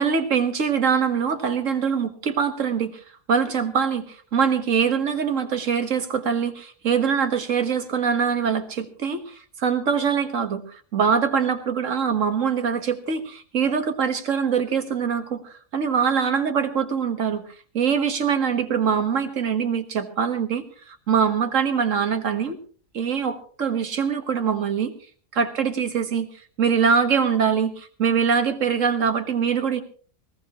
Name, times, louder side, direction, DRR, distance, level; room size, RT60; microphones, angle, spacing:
voice 1, 0.0-3.0 3.3-17.4 17.7-22.6 22.9-24.9 25.3-26.3 26.6-29.8, right 6 dB, 75° right, 8 dB, 1.8 m, -23 dB
19.5 x 18.5 x 3.0 m, 0.41 s
omnidirectional pair, 1.3 m